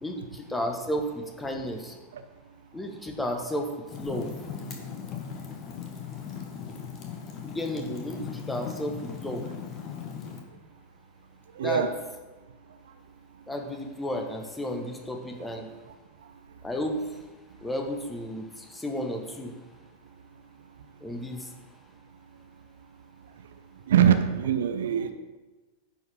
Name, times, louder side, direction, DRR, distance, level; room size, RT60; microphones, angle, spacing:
voice 1, 0.0-1.9 2.7-3.7 4.0-4.3 7.4-9.4 11.6-11.8 13.5-15.7 16.6-17.0 17.6-19.5 21.0-21.5, left 1 dB, 10° left, 3 dB, 1.3 m, -32 dB
Fire, 3.9-10.4, left 7 dB, 35° left, 1.4 m, -38 dB
voice 2, 11.6-11.9 15.4-15.5 23.9-25.1, right 9 dB, 60° right, 9 dB, 0.5 m, -22 dB
9.8 x 4.8 x 5.9 m, 1.2 s
figure-of-eight pair, 90°, 0 cm